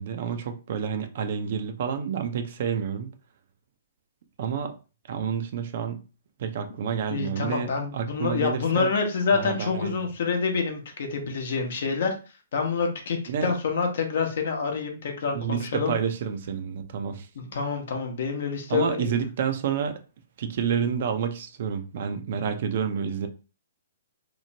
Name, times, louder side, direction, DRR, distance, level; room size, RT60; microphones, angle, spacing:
voice 1, 0.0-3.1 4.4-4.8 5.1-6.0 6.4-8.9 9.3-9.9 13.3-13.5 15.3-17.3 18.7-20.0 20.4-23.3, right 7 dB, 55° right, 0.4 m, -29 dB
voice 2, 7.1-12.1 12.5-15.9 17.4-19.2, left 5 dB, 60° left, 0.8 m, -27 dB
3.0 x 2.0 x 2.7 m
hypercardioid pair, 125°, 0 cm